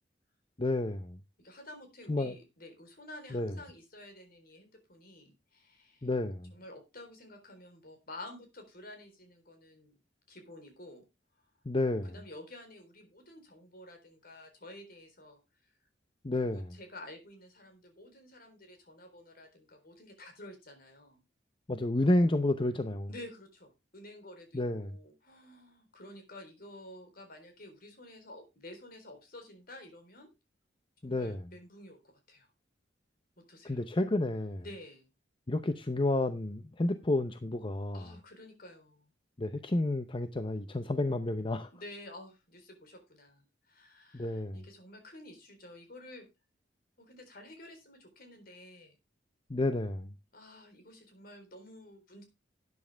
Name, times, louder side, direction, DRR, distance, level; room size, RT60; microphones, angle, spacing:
voice 1, 0.6-1.2 2.1-2.3 3.3-3.5 6.0-6.5 11.7-12.1 16.2-16.8 21.7-23.1 24.5-24.9 31.0-31.5 33.6-34.6 35.5-38.0 39.4-41.7 44.1-44.6 49.5-50.1, left 2 dB, 30° left, 0.7 m, -30 dB
voice 2, 1.4-6.1 6.5-10.0 10.3-11.0 12.0-15.4 16.3-21.2 23.1-30.3 31.0-32.5 33.4-33.8 34.6-35.1 37.9-39.1 41.7-46.3 47.0-49.0 50.3-52.2, left 1 dB, 55° left, 4.0 m, -51 dB
12.5 x 9.6 x 3.4 m
head